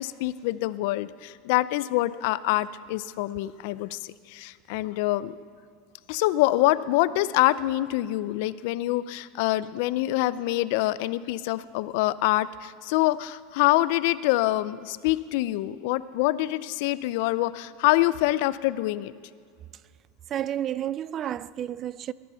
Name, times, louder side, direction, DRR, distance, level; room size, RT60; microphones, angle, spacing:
voice 1, 0.0-5.4 6.1-19.1, left 17 dB, 65° left, 0.5 m, -25 dB
voice 2, 20.3-22.1, right 11 dB, 35° right, 0.3 m, -31 dB
20.0 x 11.0 x 5.7 m
supercardioid pair, 145°, 0 cm